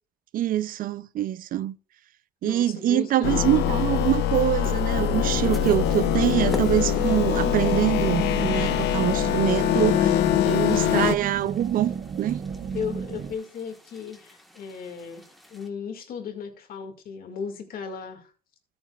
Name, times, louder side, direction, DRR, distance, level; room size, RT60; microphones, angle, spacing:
voice 1, 0.3-1.8 2.4-10.2 10.5-12.4, right 12 dB, 55° right, 0.5 m, -24 dB
voice 2, 2.4-3.4 12.7-18.3, left 6 dB, 60° left, 2.1 m, -36 dB
sound 1, 3.2-11.1, left 11 dB, 85° left, 0.8 m, -23 dB
sound 2, 3.6-15.7, equal, ahead, 1.4 m, -47 dB
sound 3, 4.9-13.3, right 6 dB, 35° right, 0.8 m, -34 dB
13.5 x 9.0 x 2.4 m
cardioid pair, 110°, 17 cm